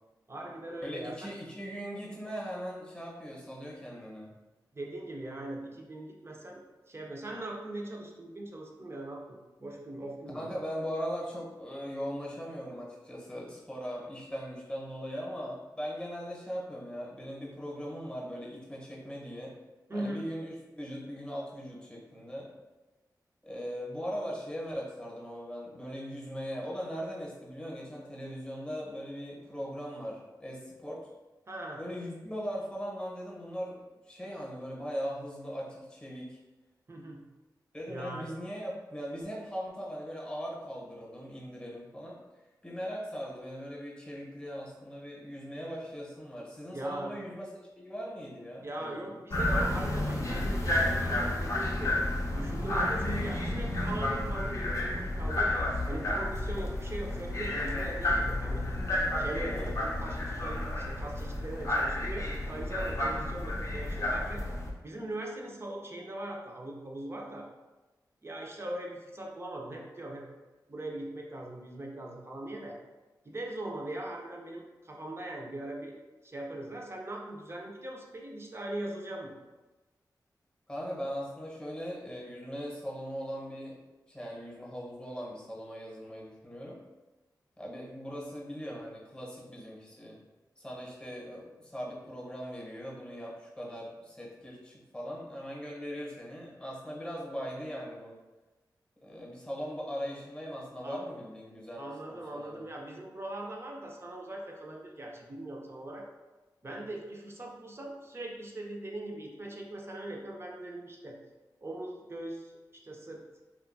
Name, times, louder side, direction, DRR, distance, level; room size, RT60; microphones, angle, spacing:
voice 1, 0.3-1.3 4.7-6.6 6.9-10.5 19.9-20.2 31.5-31.8 36.9-37.3 37.9-38.3 46.7-47.1 48.6-51.9 52.3-55.5 55.9-58.6 59.2-64.4 64.8-67.4 68.2-70.3 70.7-72.8 73.2-75.9 76.2-79.3 100.8-101.0 101.8-106.0 106.6-111.2 111.6-112.5 112.8-113.2, right 1 dB, 35° right, 0 dB, 0.5 m, -40 dB
voice 2, 0.8-4.3 10.3-19.5 19.9-22.5 23.4-31.1 31.8-33.8 34.1-36.4 37.7-42.2 42.6-49.2 59.3-59.7 80.7-83.8 84.1-86.8 87.6-90.2 90.6-98.2 99.0-102.7, equal, 10° left, -4 dB, 0.9 m, -39 dB
sound 1, 49.3-64.7, left 1 dB, 40° left, 0.6 m, -31 dB
2.6 x 2.3 x 2.5 m, 1.1 s
cardioid pair, 50°, 8 cm